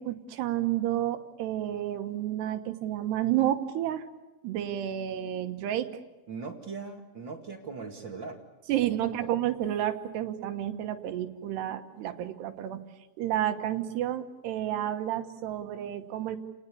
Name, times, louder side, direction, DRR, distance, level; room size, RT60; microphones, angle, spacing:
voice 1, 0.0-4.0 4.4-5.9 8.7-12.8 13.2-16.4, right 12 dB, 80° right, 8 dB, 3.4 m, -30 dB
voice 2, 6.3-8.4 9.2-9.3, right 4 dB, 40° right, 4 dB, 1.9 m, -39 dB
29.5 x 19.5 x 8.5 m, 1.1 s
omnidirectional pair, 4.8 m